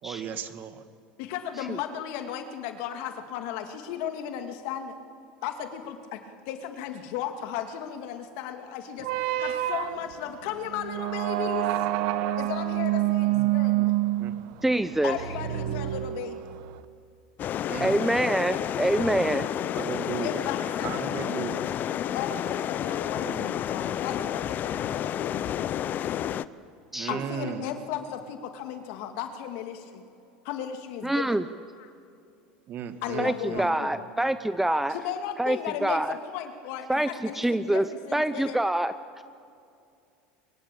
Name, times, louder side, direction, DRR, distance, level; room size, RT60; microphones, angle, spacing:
voice 1, 0.0-0.8 13.3-13.9 14.2-14.4 17.7-18.0 19.7-20.4 20.8-21.6 22.9-23.5 26.9-27.7 32.7-33.7, right 8 dB, 45° right, 9 dB, 1.9 m, -36 dB
voice 2, 1.2-5.0 5.4-11.7 12.4-13.8 15.0-16.5 20.0-21.3 22.1-26.0 27.1-30.0 30.4-31.4 31.8-31.9 33.0-34.1 34.9-38.6, left 9 dB, 65° left, 6 dB, 2.6 m, -35 dB
sound 1, 9.0-16.8, right 14 dB, 70° right, 1.3 m, -28 dB
voice 3, 14.6-15.2 17.8-19.5 26.9-27.2 31.0-31.4 33.2-35.0 35.4-36.2 36.9-37.9 38.1-39.2, right 1 dB, 5° right, 12 dB, 0.7 m, -26 dB
sound 2, 17.4-26.5, left 10 dB, 40° left, 0.7 m, -30 dB
23.0 x 22.0 x 8.7 m, 2.5 s
supercardioid pair, 110°, 5 cm